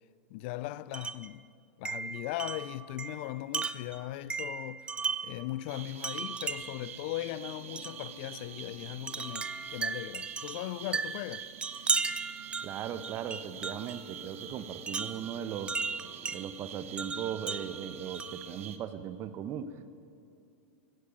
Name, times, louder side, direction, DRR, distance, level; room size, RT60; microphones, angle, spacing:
voice 1, 0.3-1.5 1.8-11.5, left 15 dB, 55° left, 0.4 m, -39 dB
Wind chime, 0.9-1.3 1.9-5.4 6.0-6.9 7.8-8.0 9.1-14.0 14.9-16.4 17.0-18.5, right 5 dB, 15° right, 0.5 m, -36 dB
sound 1, 5.7-18.8, right 9 dB, 80° right, 0.9 m, -46 dB
sound 2, 6.2-16.4, equal, 40° left, 3.3 m, -56 dB
voice 2, 12.6-15.8 16.3-19.9, right 9 dB, 35° right, 0.9 m, -38 dB
15.5 x 15.5 x 5.2 m
hypercardioid pair, 115°, 7 cm